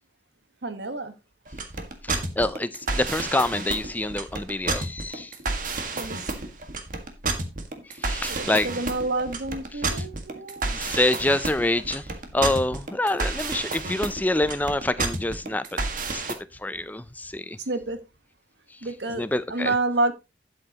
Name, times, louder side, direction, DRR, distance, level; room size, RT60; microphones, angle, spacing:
voice 1, 0.6-1.1 5.9-6.5 8.3-10.7 17.7-18.0 18.8-20.1, right 2 dB, 75° right, 1.4 m, -29 dB
sound 1, 1.5-16.3, right 3 dB, 50° right, 1.8 m, -30 dB
voice 2, 2.1-5.3 8.0-8.7 9.9-10.0 10.7-12.0 12.3-15.8 16.1-16.2 16.6-17.6 19.1-19.7, left 1 dB, 10° left, 0.5 m, -26 dB
12.0 x 7.8 x 3.0 m
head